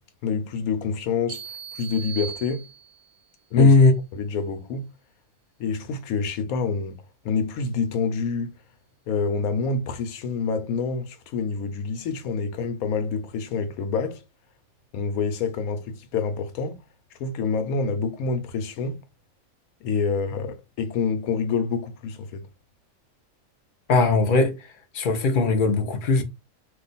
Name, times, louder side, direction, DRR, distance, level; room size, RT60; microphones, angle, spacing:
voice 1, 0.2-1.4 1.7-2.6 3.5-3.7 4.1-4.9 5.6-8.5 9.1-14.2 14.9-16.8 17.2-19.0 19.8-22.4, left 5 dB, 80° left, 1.1 m, -27 dB
sound 1, 1.3-3.2, right 8 dB, 90° right, 1.1 m, -38 dB
voice 2, 3.6-3.9 23.9-24.6 24.9-26.2, left 3 dB, 55° left, 0.6 m, -18 dB
2.5 x 2.4 x 3.9 m
omnidirectional pair, 1.5 m